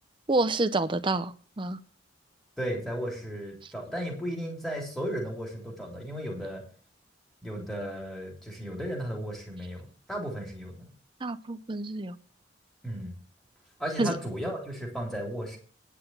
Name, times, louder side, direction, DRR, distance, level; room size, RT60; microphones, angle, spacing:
voice 1, 0.3-1.8 11.2-12.2 14.0-14.2, right 2 dB, 25° right, 0.7 m, -28 dB
voice 2, 2.6-6.6 7.4-10.9 12.8-13.1 13.8-15.6, equal, ahead, 3.5 m, -35 dB
10.0 x 6.0 x 7.8 m
head